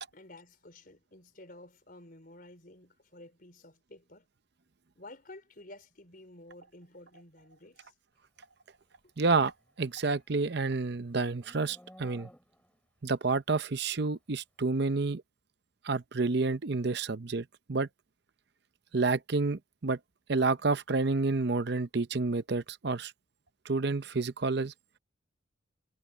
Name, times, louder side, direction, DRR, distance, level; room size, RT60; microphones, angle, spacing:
voice 1, 0.1-4.3 4.9-7.9, left 2 dB, 45° left, 4.4 m, -52 dB
voice 2, 9.2-12.3 13.0-15.2 15.8-17.9 18.9-20.0 20.3-23.1 23.6-24.7, right 3 dB, 55° right, 0.7 m, -29 dB
Livestock farm animals working animals, 9.6-12.9, equal, 5° left, 3.2 m, -57 dB
head